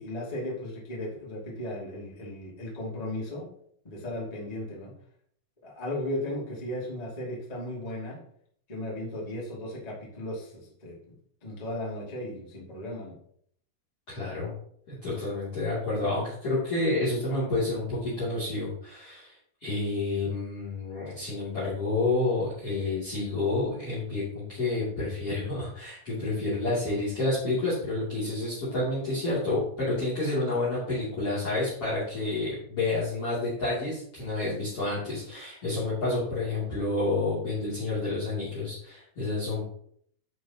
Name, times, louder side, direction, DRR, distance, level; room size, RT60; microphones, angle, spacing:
voice 1, 0.0-3.5 3.8-4.9 5.6-8.2 8.7-10.9 11.4-13.1, left 1 dB, 70° left, -4 dB, 0.4 m, -36 dB
voice 2, 14.1-14.5 14.9-19.3 19.6-39.6, left 2 dB, 35° left, -8 dB, 3.1 m, -29 dB
10.5 x 6.4 x 3.0 m, 0.65 s
omnidirectional pair, 5.8 m